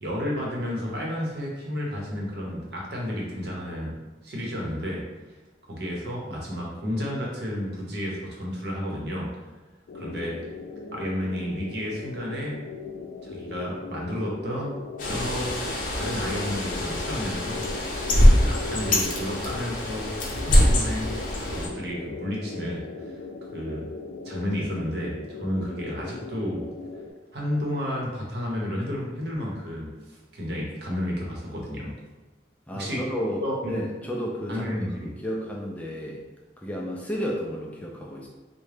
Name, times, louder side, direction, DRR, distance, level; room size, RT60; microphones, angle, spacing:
voice 1, 0.0-3.9 4.2-5.0 5.6-9.3 9.9-10.4 10.9-12.6 13.2-14.8 15.0-15.5 15.8-17.6 18.3-20.1 20.4-21.1 21.4-23.2 23.5-23.9 24.2-26.6 27.3-31.9 32.7-33.0 33.4-33.8 34.5-35.1, equal, 70° right, -3 dB, 0.8 m, -31 dB
sound 1, 9.9-27.1, left 3 dB, 90° left, 0.3 m, -38 dB
Bird, 15.0-21.7, left 1 dB, 45° left, 0.6 m, -23 dB
voice 2, 32.7-34.7 35.0-36.2 36.6-38.3, equal, 10° left, -2 dB, 0.3 m, -32 dB
3.6 x 2.1 x 3.3 m, 1.2 s
head